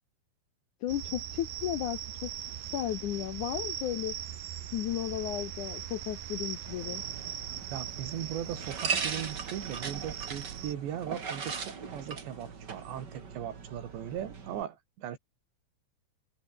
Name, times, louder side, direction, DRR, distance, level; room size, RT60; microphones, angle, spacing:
voice 1, 0.8-2.3 2.6-4.2 4.7-7.0, left 12 dB, 75° left, 1.8 m, -34 dB
sound 1, 0.9-10.7, right 11 dB, 60° right, 3.1 m, -40 dB
sound 2, 1.5-7.9, left 1 dB, 15° left, 8.3 m, -63 dB
sound 3, 6.6-14.6, right 5 dB, 35° right, 2.1 m, -39 dB
voice 2, 7.7-15.2, right 10 dB, 85° right, 4.6 m, -38 dB
omnidirectional pair, 5.0 m